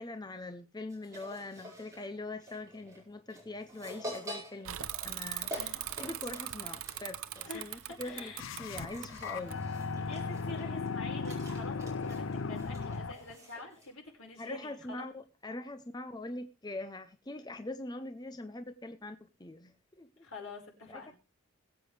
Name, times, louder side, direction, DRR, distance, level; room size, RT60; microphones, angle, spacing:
voice 1, 0.0-5.6 6.0-8.3 8.6-9.6 14.4-20.3 20.9-21.1, left 2 dB, 20° left, 0.6 m, -43 dB
sound 1, 0.9-13.9, equal, 15° right, 5.0 m, -48 dB
Bicycle / Mechanisms, 4.6-10.1, right 13 dB, 85° right, 0.7 m, -41 dB
voice 2, 7.4-8.5 10.1-15.1 20.2-21.1, left 2 dB, 85° left, 5.2 m, -46 dB
sound 2, 8.4-13.3, left 4 dB, 65° left, 0.6 m, -37 dB
21.0 x 8.2 x 3.3 m
head